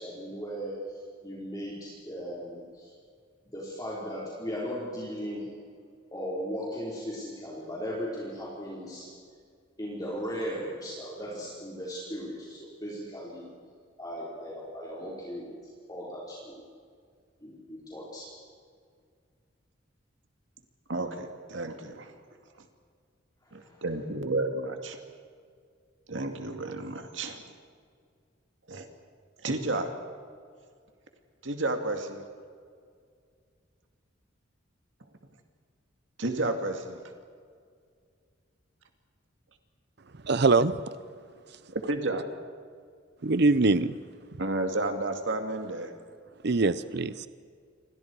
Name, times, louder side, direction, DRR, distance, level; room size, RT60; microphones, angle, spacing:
voice 1, 0.0-2.9 3.5-5.5 6.1-9.1 9.8-13.5 14.0-15.6 15.9-16.6 17.4-18.3 23.5-23.8, equal, 20° left, -6 dB, 4.9 m, -37 dB
voice 2, 20.9-22.1 22.6-22.7 23.5-25.0 26.1-27.4 28.7-28.9 29.4-29.9 31.4-32.2 36.2-37.0 41.7-42.3 44.4-45.9, right 2 dB, 75° right, 5 dB, 2.2 m, -31 dB
voice 3, 40.2-40.7 43.2-43.9 46.4-47.3, right 3 dB, 60° right, 15 dB, 0.7 m, -23 dB
29.5 x 25.0 x 4.8 m, 2.1 s
head